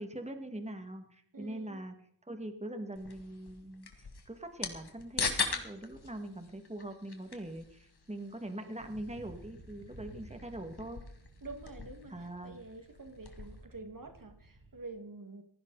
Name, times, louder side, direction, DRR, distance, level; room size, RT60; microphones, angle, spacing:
voice 1, 0.0-1.9 2.2-11.0 12.1-12.6, right 1 dB, 15° right, 6 dB, 2.1 m, -42 dB
voice 2, 1.3-1.8 11.4-12.1 12.4-15.4, right 3 dB, 55° right, 7 dB, 2.1 m, -47 dB
sound 1, 2.9-13.6, left 4 dB, 70° left, 2.4 m, -41 dB
sound 2, 8.8-14.9, right 2 dB, 70° right, 7.0 m, -55 dB
18.5 x 15.5 x 4.1 m, 0.67 s
wide cardioid pair, 65°, 40 cm